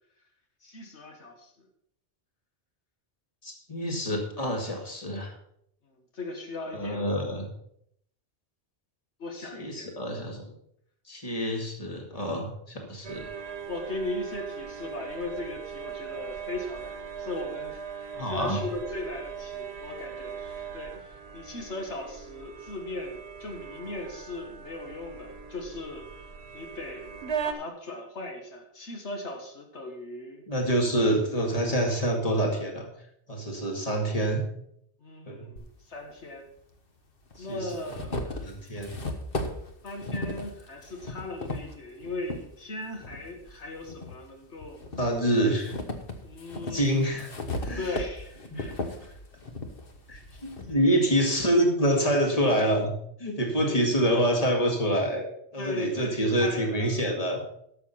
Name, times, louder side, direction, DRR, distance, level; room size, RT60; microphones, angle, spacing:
voice 1, 0.6-1.7 5.9-7.2 9.2-9.9 13.7-26.1 26.5-30.5 35.0-36.5 37.4-38.5 39.8-44.8 46.2-47.2 47.8-49.2 53.6-53.9 55.6-57.0, left 2 dB, 85° left, 3 dB, 1.9 m, -38 dB
voice 2, 3.4-5.3 6.7-7.5 9.5-10.4 11.1-13.3 18.1-18.6 30.5-32.9 33.3-34.4 35.3-35.5 37.4-37.7 38.4-39.0 45.0-45.7 46.7-47.3 47.6-47.8 48.5-48.6 50.1-52.9 53.2-55.2 55.5-57.4, equal, 35° left, 1 dB, 2.3 m, -26 dB
sound 1, 13.0-27.5, right 7 dB, 70° right, 1.3 m, -39 dB
sound 2, 35.6-35.7 36.7-36.8 37.3-42.4 43.0-44.2 44.6-50.7, left 2 dB, 55° left, 1.5 m, -36 dB
12.5 x 6.7 x 5.8 m, 0.73 s
omnidirectional pair, 1.1 m